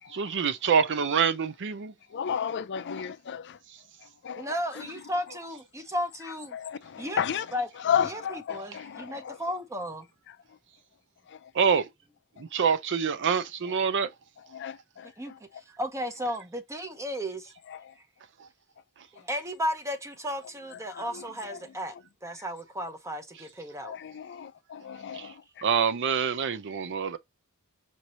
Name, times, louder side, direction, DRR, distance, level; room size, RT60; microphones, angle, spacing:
voice 1, 0.1-1.9 11.6-11.9 12.4-14.1 18.4-18.5 25.1-25.3 25.6-27.2, right 6 dB, 55° right, 0.6 m, -26 dB
voice 2, 2.1-3.6 4.2-5.4 6.5-7.6 7.8-9.5 10.3-10.4 13.6-13.8 14.5-15.4 17.7-17.9 20.7-21.6 21.9-22.0 23.8-25.6, left 8 dB, 50° left, 0.5 m, -34 dB
voice 3, 4.4-6.6 7.0-7.2 7.5-7.7 8.0-10.1 15.2-17.5 19.2-21.9 22.2-24.0, equal, 15° right, 0.6 m, -34 dB
4.6 x 2.7 x 2.9 m
head